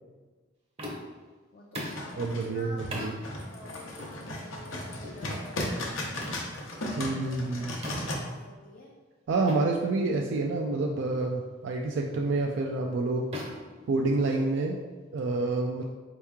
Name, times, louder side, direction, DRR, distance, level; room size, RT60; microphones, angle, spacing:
sound 1, 0.8-1.2 1.7-2.1 2.9-3.2 4.0-4.2 5.0-5.2 6.2-6.4 7.8-8.2 9.5-9.6 10.0-10.2 11.0-11.2 12.1-12.4 13.3-14.5, equal, 30° right, 0.7 m, -39 dB
voice 1, 1.5-6.1 6.9-7.6 8.1-8.9, left 1 dB, 45° left, -3 dB, 0.5 m, -48 dB
sound 2, 1.9-8.1, left 1 dB, 90° left, 0.8 m, -36 dB
voice 2, 2.2-3.1 7.0-7.7 9.3-13.2 13.9-14.8 15.1-15.8, right 3 dB, 65° right, 0 dB, 0.3 m, -28 dB
4.4 x 2.9 x 3.6 m, 1.4 s
head